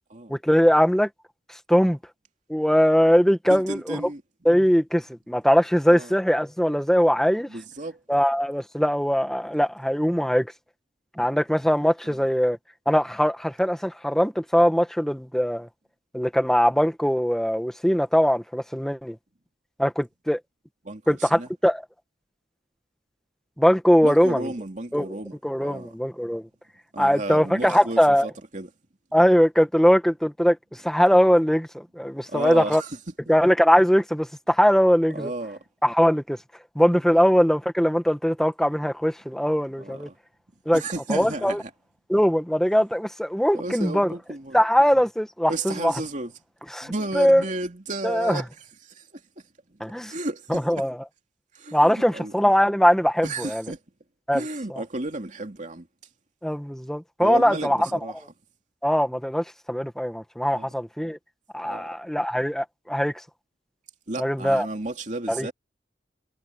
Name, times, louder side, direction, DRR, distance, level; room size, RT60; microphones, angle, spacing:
voice 1, 0.3-1.1 1.7-2.0 2.5-4.0 4.4-7.5 8.1-10.5 11.2-12.6 12.8-15.7 16.1-19.1 19.8-20.4 21.1-21.8 23.6-24.5 24.9-25.2 25.4-26.5 27.0-28.3 29.1-30.6 30.8-32.8 33.3-35.3 35.8-36.4 36.7-40.1 40.6-40.8 41.1-41.6 42.1-44.1 44.5-45.9 46.7-47.4 48.0-48.4 49.8-50.1 50.5-51.0 51.7-53.6 54.3-54.4 54.7-54.8 56.4-57.9 58.8-61.2 61.5-63.1 64.2-64.6 65.3-65.5, equal, 5° left, 1.7 m, -21 dB
voice 2, 3.5-4.2 5.9-6.1 7.5-8.0 12.0-12.2 20.8-21.5 24.0-25.3 25.6-25.9 26.9-28.7 32.3-33.0 35.1-35.6 37.1-37.3 39.8-40.2 40.7-41.7 43.5-44.6 45.5-46.3 46.8-48.5 48.8-49.1 49.7-49.8 50.1-50.8 51.5-52.3 53.2-53.8 54.3-55.9 57.2-58.2 60.5-60.7 61.6-61.9 64.1-65.5, right 2 dB, 45° right, 2.7 m, -33 dB
head